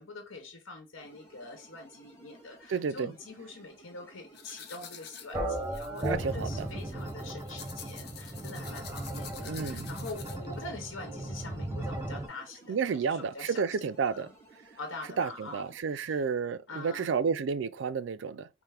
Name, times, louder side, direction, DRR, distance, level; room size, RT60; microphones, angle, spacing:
voice 1, 0.0-13.6 14.0-14.3 14.8-16.2 16.7-17.2, left 3 dB, 85° left, 1.0 m, -45 dB
sound 1, 1.0-15.8, right 2 dB, 15° left, 1.6 m, -57 dB
voice 2, 2.7-3.1 6.0-6.7 9.5-9.9 12.7-14.3 15.2-18.5, right 5 dB, 65° right, 0.4 m, -31 dB
sound 2, 4.3-10.6, left 8 dB, 55° left, 0.7 m, -48 dB
sound 3, 5.3-12.3, right 1 dB, 15° right, 0.7 m, -36 dB
5.6 x 2.1 x 3.3 m
head